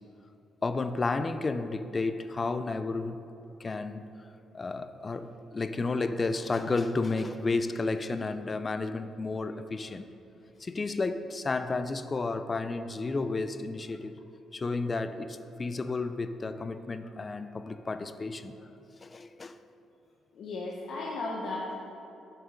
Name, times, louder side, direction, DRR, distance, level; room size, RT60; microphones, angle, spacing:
voice 1, 0.6-3.3 3.6-4.1 4.5-10.1 10.6-14.1 14.5-18.6 19.0-19.6, left 3 dB, 30° left, 10 dB, 0.4 m, -32 dB
voice 2, 20.3-21.7, left 2 dB, 65° left, -4 dB, 1.1 m, -35 dB
7.3 x 5.6 x 5.2 m, 2.9 s
cardioid pair, 90°, 0 cm